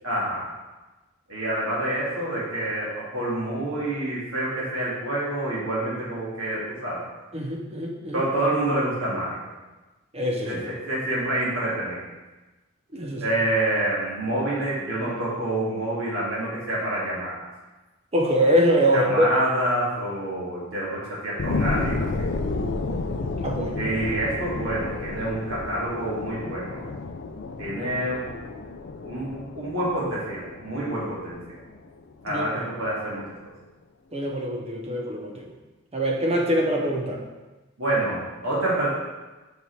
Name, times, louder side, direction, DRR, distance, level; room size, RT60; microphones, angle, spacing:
voice 1, 0.0-0.5 1.3-7.0 8.1-9.4 10.5-12.0 13.2-17.4 18.9-22.3 23.8-26.8 27.6-28.4 29.0-31.6 32.2-33.4 37.8-38.9, right 1 dB, 70° right, -7 dB, 2.3 m, -27 dB
voice 2, 7.3-8.2 10.1-10.6 12.9-13.3 18.1-19.3 23.4-23.8 27.7-27.8 32.3-32.4 34.1-35.5 35.9-37.2, equal, 30° right, 1 dB, 0.7 m, -24 dB
sound 1, 21.4-32.4 32.9-33.0, left 3 dB, 55° left, 0.5 m, -31 dB
5.6 x 4.7 x 4.6 m, 1.2 s
head